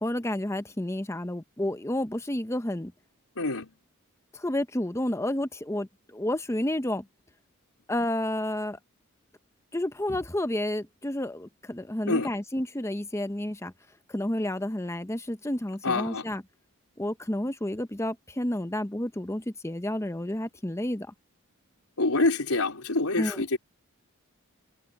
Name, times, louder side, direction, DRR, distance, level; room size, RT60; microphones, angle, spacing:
voice 1, 0.0-2.9 4.4-5.9 6.1-7.0 7.9-8.8 9.7-13.7 14.1-16.4 17.0-21.1 23.2-23.4, left 1 dB, 10° left, 0.8 m, -30 dB
voice 2, 3.4-3.7 12.1-12.3 15.8-16.3 22.0-23.6, left 2 dB, 80° left, 4.1 m, -26 dB
head